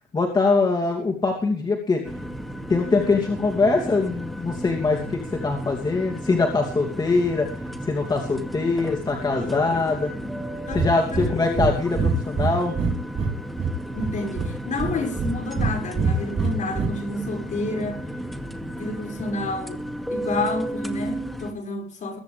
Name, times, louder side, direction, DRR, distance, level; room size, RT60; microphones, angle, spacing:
voice 1, 0.1-2.0 2.7-10.4 10.7-12.8 18.6-18.7, left 3 dB, 25° left, 2.8 m, -23 dB
sound 1, 2.0-21.5, right 1 dB, ahead, 2.3 m, -34 dB
voice 2, 9.4-10.0 10.7-11.7 13.9-18.0 18.7-19.8 20.1-22.2, left 2 dB, 45° left, 5.8 m, -30 dB
Breathing, 10.7-10.9 11.1-11.3 11.6-11.7 12.0-13.3 13.6-14.5 14.8-15.7 16.0-16.9, right 5 dB, 40° right, 4.1 m, -24 dB
22.5 x 10.5 x 3.4 m
cardioid pair, 110°, 17 cm